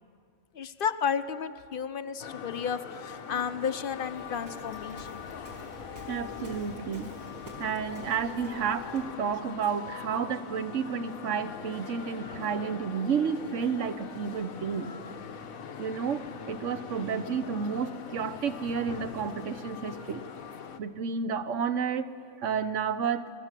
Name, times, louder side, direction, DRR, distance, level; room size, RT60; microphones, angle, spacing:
voice 1, 0.5-5.2, left 7 dB, 50° left, 12 dB, 0.8 m, -32 dB
sound 1, 2.2-20.8, left 7 dB, 85° left, 1.5 m, -42 dB
Waves surf, 4.0-9.2, left 1 dB, 85° right, 3.3 m, -50 dB
voice 2, 6.1-7.1 7.6-14.9 15.8-20.2 20.8-23.3, right 6 dB, 65° right, 12 dB, 1.2 m, -31 dB
25.5 x 18.5 x 7.5 m, 2.2 s
omnidirectional pair, 1.4 m